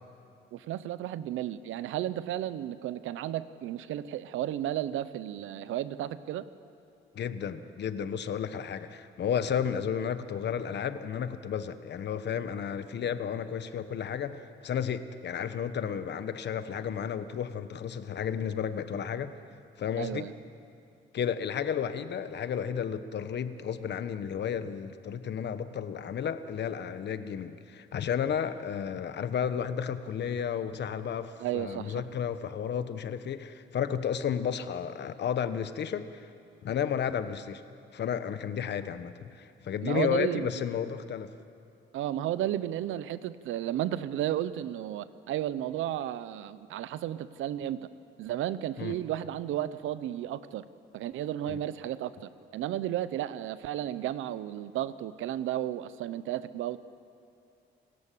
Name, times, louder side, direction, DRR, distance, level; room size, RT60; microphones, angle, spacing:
voice 1, 0.5-6.4 20.0-20.3 31.4-31.9 39.8-40.4 41.9-47.8 48.2-50.6 50.9-56.8, right 12 dB, 85° right, 15 dB, 0.8 m, -33 dB
voice 2, 7.1-19.3 19.8-20.3 21.1-36.3 36.6-37.6 37.9-41.3 48.8-49.0 51.5-51.6, left 8 dB, 60° left, 11 dB, 1.2 m, -32 dB
29.0 x 13.5 x 8.5 m, 2.5 s
cardioid pair, 90°, 20 cm